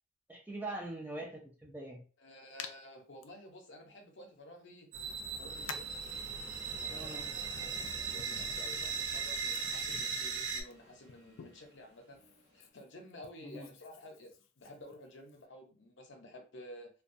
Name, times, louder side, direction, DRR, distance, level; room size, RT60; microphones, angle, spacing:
voice 1, 0.3-2.0 6.9-7.3 13.4-13.7, right 2 dB, 10° right, -2 dB, 0.5 m, -42 dB
voice 2, 2.2-4.9 5.3-5.9 6.7-12.2 12.5-16.9, left 1 dB, 65° left, 2 dB, 0.7 m, -52 dB
Hands, 2.6-2.7 3.2-3.3 4.6-4.7 5.7-6.0 6.9-11.8 12.1-15.5, left 7 dB, 90° left, 0.3 m, -51 dB
sound 1, 4.9-10.6, right 5 dB, 85° right, 0.5 m, -38 dB
sound 2, 5.5-12.7, equal, 35° right, 0.9 m, -59 dB
2.3 x 2.2 x 2.6 m, 0.36 s
head